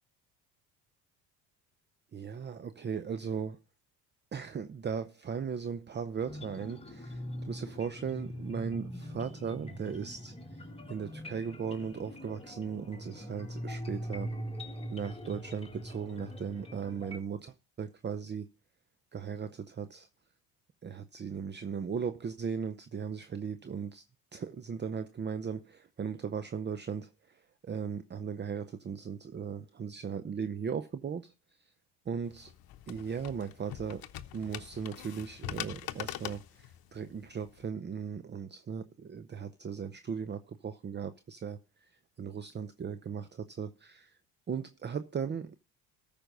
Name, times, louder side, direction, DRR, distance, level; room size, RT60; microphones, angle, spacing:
voice 1, 2.1-3.6 4.3-10.3 10.9-14.3 14.9-18.5 19.1-20.1 20.8-24.0 24.3-27.1 27.6-31.3 32.1-32.5 32.9-34.1 34.3-41.6 42.2-44.1 44.5-45.6, right 6 dB, 25° right, 0.7 m, -37 dB
sound 1, 6.3-17.2, equal, 15° left, 1.9 m, -42 dB
sound 2, 32.3-37.6, left 13 dB, 60° left, 0.9 m, -43 dB
13.5 x 5.2 x 5.3 m
supercardioid pair, 75°, 41 cm